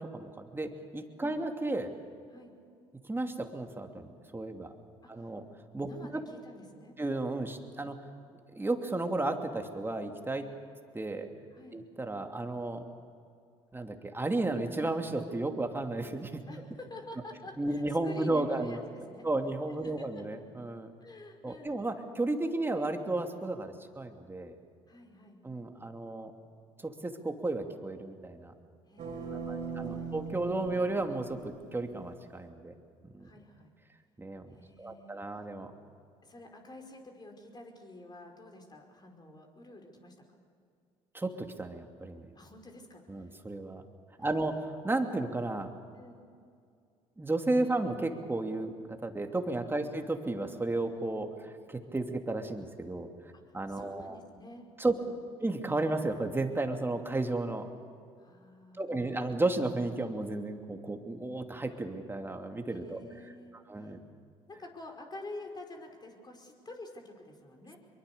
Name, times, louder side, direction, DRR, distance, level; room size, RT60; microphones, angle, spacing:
voice 1, 0.0-1.9 3.0-4.7 5.1-5.4 5.7-6.2 7.0-8.0 8.5-10.5 10.9-11.3 11.7-12.9 13.7-16.4 17.6-18.8 19.2-20.9 21.4-24.5 25.4-26.3 26.8-28.5 29.3-32.7 33.1-33.3 34.2-35.7 41.1-42.3 43.1-43.8 44.2-45.7 47.2-53.1 53.5-54.2 54.8-55.0 55.4-57.7 58.8-63.0 63.7-64.0, right 2 dB, 15° right, 5 dB, 2.7 m, -33 dB
voice 2, 5.0-5.3 5.8-7.0 11.5-11.9 16.5-19.3 19.8-20.2 21.0-21.8 24.9-25.4 28.9-30.1 33.2-33.7 34.5-35.2 36.2-40.2 42.4-43.4 44.2-44.5 46.0-46.2 49.8-49.9 53.3-55.1 58.2-58.9 62.8-64.0 64.5-67.8, left 2 dB, 25° left, 3 dB, 5.2 m, -49 dB
sound 1, 29.0-32.0, right 5 dB, 55° right, 4.2 m, -40 dB
25.0 x 23.0 x 6.9 m, 2.3 s
hypercardioid pair, 60°, 15 cm